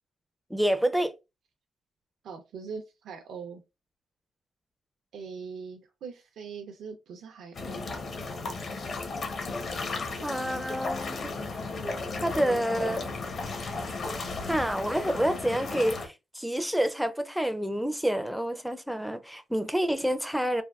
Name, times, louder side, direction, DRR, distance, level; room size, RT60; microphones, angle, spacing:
voice 1, 0.5-1.1 10.2-11.3 12.2-13.1 14.4-20.6, right 1 dB, ahead, 0.4 m, -28 dB
voice 2, 2.2-3.6 5.1-7.9, right 5 dB, 75° right, 0.4 m, -41 dB
sound 1, 7.5-16.1, left 3 dB, 55° left, 0.7 m, -34 dB
3.3 x 2.2 x 2.2 m
cardioid pair, 95°, 0 cm